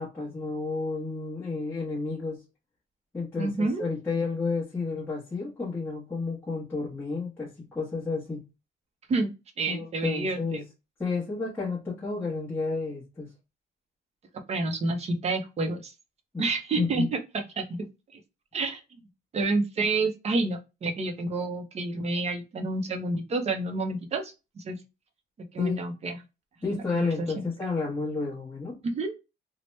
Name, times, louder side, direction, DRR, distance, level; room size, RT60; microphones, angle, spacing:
voice 1, 0.0-2.4 3.1-8.4 9.7-10.6 11.0-13.3 16.3-16.4 16.8-17.1 25.6-25.8 26.6-28.8, left 4 dB, 10° left, 0.9 m, -31 dB
voice 2, 3.4-3.8 9.1-10.6 14.5-15.9 16.4-17.2 17.6-17.8 18.1-18.2 18.5-18.8 19.3-24.8 25.5-26.2 26.9-27.4 28.8-29.1, right 3 dB, 30° right, 0.6 m, -29 dB
2.9 x 2.1 x 3.0 m
cardioid pair, 160°, 21 cm